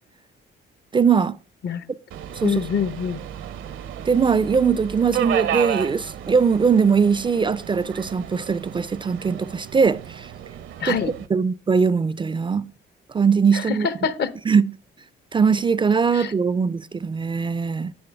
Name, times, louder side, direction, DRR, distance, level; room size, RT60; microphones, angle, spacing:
voice 1, 0.9-1.4 2.4-2.5 4.1-10.3 10.9-11.0 11.3-12.7 13.1-13.9 14.5-14.7 15.3-17.9, right 5 dB, 25° right, 0.4 m, -20 dB
Subway metro underground, 2.1-11.3, right 10 dB, 75° right, 0.8 m, -32 dB
voice 2, 2.4-3.2 10.8-11.1 13.5-14.3 16.1-16.3, left 7 dB, 60° left, 0.8 m, -25 dB
10.5 x 8.7 x 3.4 m
cardioid pair, 90°, 20 cm